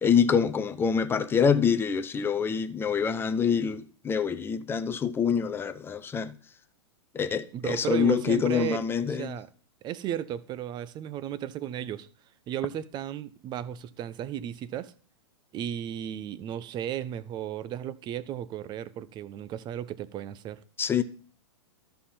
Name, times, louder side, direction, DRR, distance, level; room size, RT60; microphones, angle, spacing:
voice 1, 0.0-6.4 7.1-9.4 20.8-21.0, left 7 dB, 15° left, 0.6 m, -26 dB
voice 2, 7.5-9.5 9.8-12.1 12.5-14.9 15.5-20.6, right 10 dB, 30° right, 0.6 m, -34 dB
12.5 x 5.7 x 4.3 m
hypercardioid pair, 115°, 15 cm